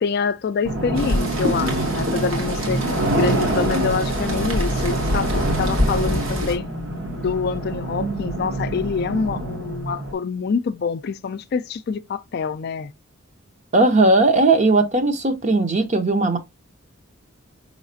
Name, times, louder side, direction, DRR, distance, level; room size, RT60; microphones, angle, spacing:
voice 1, 0.0-2.8 3.1-6.6 7.2-12.9, left 5 dB, 50° left, 0.3 m, -26 dB
sound 1, 0.6-10.1, right 1 dB, 60° right, 1.1 m, -25 dB
Rain, 0.9-6.5, left 1 dB, 90° right, 1.7 m, -27 dB
voice 2, 13.7-16.4, right 2 dB, 35° right, 0.7 m, -17 dB
5.8 x 3.2 x 2.6 m
head